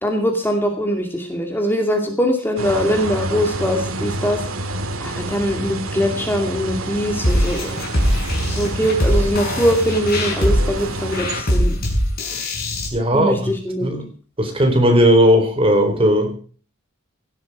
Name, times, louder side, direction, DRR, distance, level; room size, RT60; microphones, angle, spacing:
voice 1, 0.0-4.4 5.0-7.8 8.5-11.8 13.1-13.9, equal, 10° left, 3 dB, 2.5 m, -22 dB
sound 1, 2.6-11.4, right 2 dB, 80° right, 2.5 m, -28 dB
sound 2, 7.2-12.9, equal, 45° left, 6.5 m, -21 dB
voice 2, 12.9-13.5 13.8-14.1 14.4-16.3, equal, 25° right, 5 dB, 4.1 m, -16 dB
17.5 x 12.5 x 4.7 m, 0.40 s
head